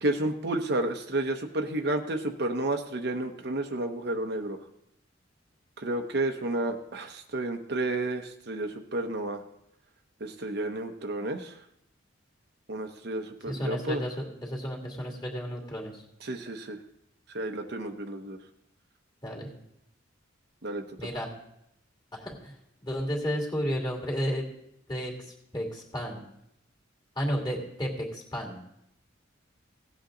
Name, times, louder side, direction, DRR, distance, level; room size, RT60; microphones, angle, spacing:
voice 1, 0.0-4.6 5.8-9.4 10.2-11.5 12.7-14.0 16.2-16.8 17.3-18.4 20.6-20.8, right 2 dB, 55° right, 5 dB, 0.8 m, -31 dB
voice 2, 13.4-16.0 19.2-19.6 21.0-21.3 22.1-22.6 22.8-24.4 24.9-26.2 27.2-28.6, equal, 20° left, -1 dB, 2.6 m, -32 dB
17.0 x 8.3 x 3.8 m, 0.80 s
head